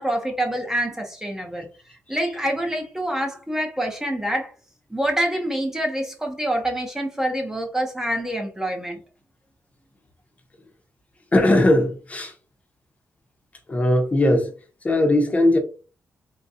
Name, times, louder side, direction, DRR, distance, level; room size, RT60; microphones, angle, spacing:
voice 1, 0.0-1.7 2.1-4.5 4.9-9.0, right 1 dB, 10° right, 0.8 m, -26 dB
voice 2, 11.3-12.3 13.7-14.5 14.8-15.6, left 1 dB, 25° left, 0.8 m, -19 dB
3.8 x 2.3 x 2.7 m
cardioid pair, 95°, 6 cm